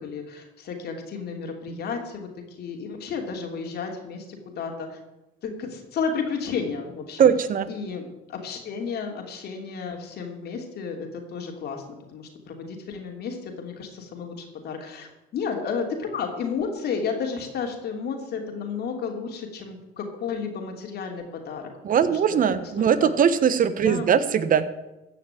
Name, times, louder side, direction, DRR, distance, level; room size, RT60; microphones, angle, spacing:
voice 1, 0.0-2.3 2.6-5.0 5.4-7.3 7.7-11.8 12.1-21.6 22.0-23.1 23.8-24.1, left 5 dB, 60° left, 3 dB, 3.2 m, -32 dB
voice 2, 7.2-7.7 21.8-24.7, right 8 dB, 45° right, 13 dB, 1.2 m, -20 dB
15.0 x 5.8 x 8.9 m, 1.0 s
supercardioid pair, 85°, 19 cm